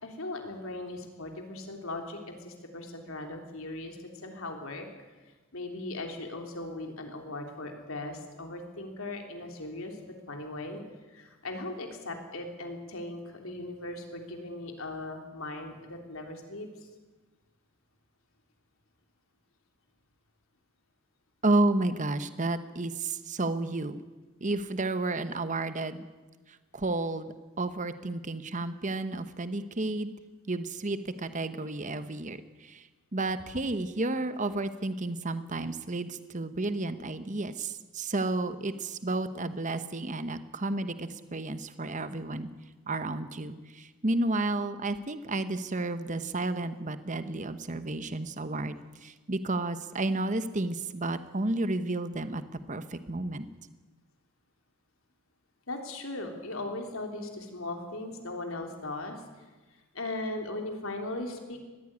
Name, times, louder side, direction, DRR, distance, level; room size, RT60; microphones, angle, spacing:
voice 1, 0.0-4.9 5.5-10.0 10.3-10.8 11.1-16.7 55.7-59.2 59.9-61.6, left 2 dB, 65° left, 3 dB, 3.5 m, -38 dB
voice 2, 21.4-24.0 24.4-26.0 26.7-30.1 30.5-32.8 33.1-42.5 42.9-48.7 49.0-52.4 52.7-53.5, right 2 dB, 35° right, 11 dB, 1.0 m, -31 dB
20.5 x 15.0 x 9.8 m, 1.3 s
head